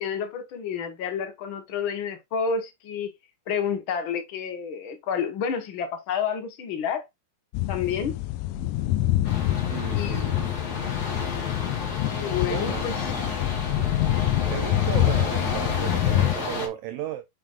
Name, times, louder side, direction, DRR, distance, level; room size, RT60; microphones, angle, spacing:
voice 1, 0.0-3.1 3.5-7.0 7.7-8.2 9.9-10.5 12.2-13.0, left 7 dB, 65° left, 1.2 m, -29 dB
sound 1, 7.5-16.3, left 14 dB, 85° left, 2.3 m, -26 dB
sound 2, 9.2-16.7, left 3 dB, 40° left, 1.4 m, -32 dB
voice 2, 9.7-10.6 12.5-12.9 14.4-17.2, right 12 dB, 90° right, 1.6 m, -35 dB
6.9 x 5.9 x 2.4 m
omnidirectional pair, 4.1 m